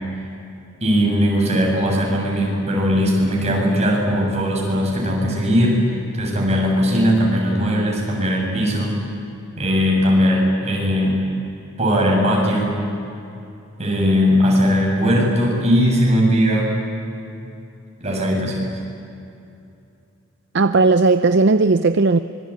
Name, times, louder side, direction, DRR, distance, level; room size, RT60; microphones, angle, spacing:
voice 1, 0.8-9.0 9.6-11.2 11.8-12.8 13.8-16.7 18.0-18.7, equal, 35° right, -2 dB, 8.0 m, -19 dB
voice 2, 20.5-22.2, right 3 dB, 55° right, 10 dB, 0.6 m, -15 dB
25.5 x 24.0 x 9.0 m, 2.7 s
head